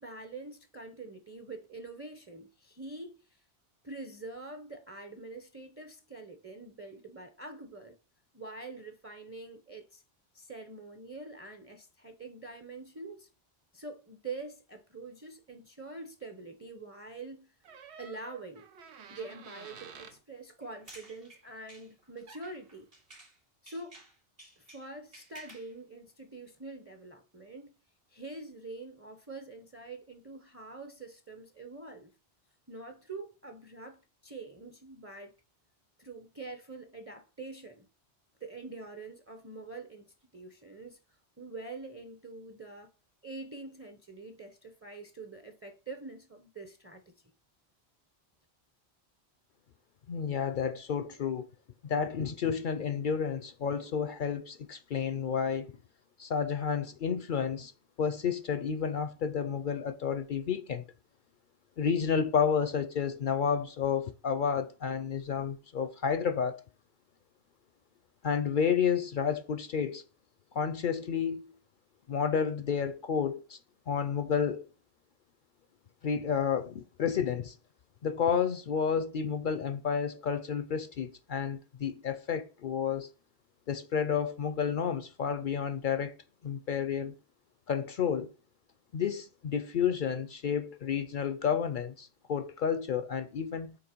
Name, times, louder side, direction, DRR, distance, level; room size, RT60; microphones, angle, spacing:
voice 1, 0.0-3.4 3.8-8.0 8.3-10.0 10.3-13.3 13.7-17.5 18.0-18.7 19.1-22.9 23.6-24.0 24.6-27.7 28.1-32.1 32.7-35.3 36.0-37.9 38.4-41.0 41.4-42.9 43.2-47.1, right 3 dB, 15° right, 0.6 m, -45 dB
Door, 17.6-20.2 22.0-22.1 22.3-22.6, right 6 dB, 90° right, 1.2 m, -50 dB
sound 1, 20.6-23.4 23.7-25.7, right 1 dB, 60° right, 3.1 m, -54 dB
voice 2, 50.1-51.5 51.8-55.7 56.2-57.7 58.0-60.8 61.8-66.6 68.2-70.0 70.5-71.5 72.1-73.6 73.9-74.7 76.0-77.6 78.0-83.1 83.7-86.2 86.4-87.1 87.7-88.3 88.9-93.8, left 7 dB, 60° left, 0.6 m, -31 dB
7.9 x 3.1 x 4.4 m
omnidirectional pair, 1.1 m